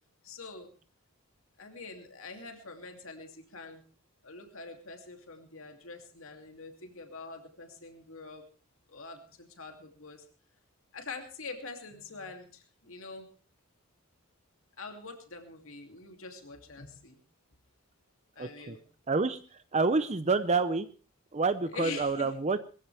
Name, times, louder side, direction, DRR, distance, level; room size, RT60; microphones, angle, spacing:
voice 1, 0.2-0.7 1.6-3.8 4.2-8.4 8.9-10.2 10.9-13.3 14.8-17.2 18.4-18.8 21.7-22.3, left 3 dB, 65° left, 4 dB, 2.8 m, -44 dB
voice 2, 18.4-18.8 19.1-19.4 19.7-20.9 21.3-22.6, right 4 dB, 30° right, 12 dB, 0.6 m, -28 dB
21.5 x 15.0 x 3.4 m, 0.37 s
head